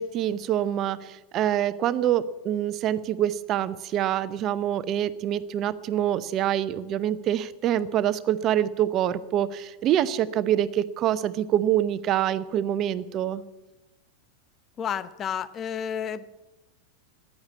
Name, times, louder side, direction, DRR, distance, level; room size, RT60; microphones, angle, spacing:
voice 1, 0.0-13.4, right 11 dB, 35° right, 15 dB, 0.8 m, -25 dB
voice 2, 14.8-16.4, left 8 dB, 25° left, 16 dB, 0.8 m, -31 dB
14.5 x 11.0 x 8.4 m, 1.1 s
figure-of-eight pair, 90°, 0 cm